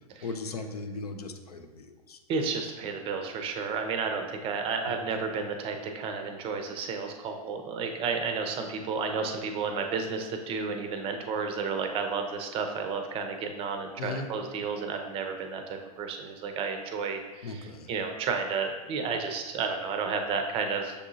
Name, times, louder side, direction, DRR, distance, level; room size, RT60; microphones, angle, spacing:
voice 1, 0.2-2.2 14.0-14.3 17.4-17.9, left 3 dB, 80° left, 6 dB, 0.5 m, -37 dB
voice 2, 2.3-20.9, right 5 dB, 30° right, 5 dB, 0.5 m, -32 dB
6.6 x 2.7 x 2.6 m, 1.2 s
figure-of-eight pair, 100°, 20 cm